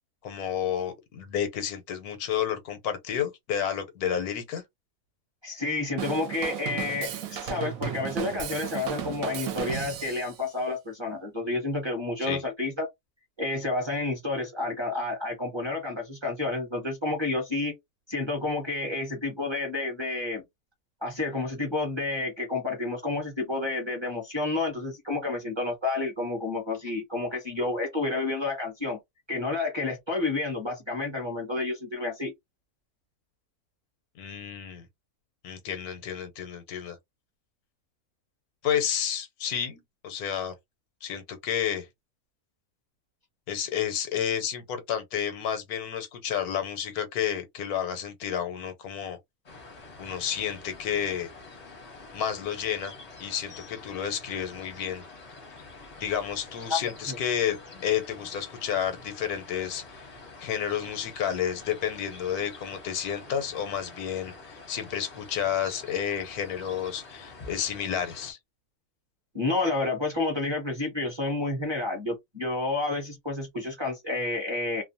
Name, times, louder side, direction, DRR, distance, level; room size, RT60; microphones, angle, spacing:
voice 1, 0.2-4.6 12.2-12.4 34.2-34.9 35.4-37.0 38.6-40.5 41.0-41.9 43.5-49.2 50.0-51.3 52.1-52.9 53.2-55.0 56.0-60.0 60.4-68.4, left 9 dB, 85° left, 1.2 m, -31 dB
voice 2, 5.4-12.9 13.4-17.7 18.1-20.4 21.0-29.0 29.3-32.3 56.7-56.8 57.1-57.2 69.3-74.8, left 2 dB, 25° right, 0.7 m, -30 dB
Drum kit / Drum, 6.0-10.4, right 9 dB, 75° right, 1.0 m, -34 dB
sound 1, 49.5-68.3, left 3 dB, 35° left, 0.6 m, -47 dB
2.7 x 2.1 x 2.6 m
omnidirectional pair, 1.6 m